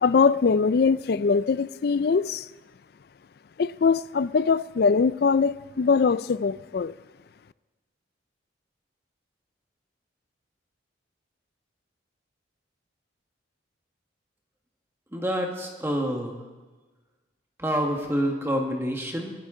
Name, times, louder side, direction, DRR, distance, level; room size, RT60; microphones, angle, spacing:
voice 1, 0.0-2.5 3.6-6.9, left 5 dB, 55° left, 0.4 m, -22 dB
voice 2, 15.1-16.4 17.6-19.3, equal, 15° right, 1.5 m, -27 dB
23.5 x 11.5 x 3.8 m
head